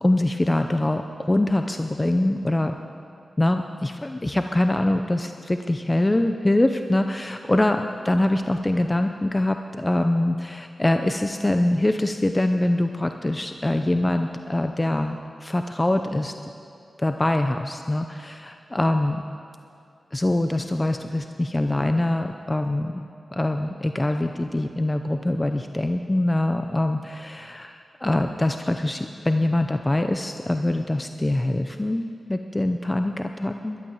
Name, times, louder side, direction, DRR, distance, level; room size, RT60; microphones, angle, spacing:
voice 1, 0.0-2.8 3.4-16.3 17.0-19.2 20.1-23.0 23.3-33.8, left 1 dB, 20° left, 6 dB, 0.6 m, -24 dB
12.0 x 11.5 x 7.2 m, 2.5 s
cardioid pair, 60°, 0 cm